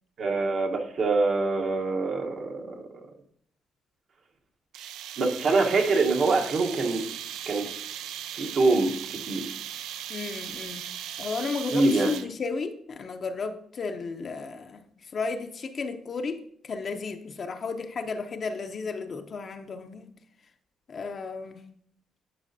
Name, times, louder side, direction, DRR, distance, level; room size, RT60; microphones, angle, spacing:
voice 1, 0.2-2.8 5.2-7.0 7.5-7.7 8.3-8.9 9.3-9.4 11.7-12.1, right 3 dB, 55° right, 3 dB, 1.1 m, -24 dB
sound 1, 4.7-12.5, right 10 dB, 85° right, 0.4 m, -38 dB
voice 2, 10.1-10.8 11.2-20.1 20.9-21.6, left 4 dB, 50° left, 7 dB, 0.7 m, -33 dB
10.5 x 5.0 x 2.7 m, 0.66 s
cardioid pair, 90°, 0 cm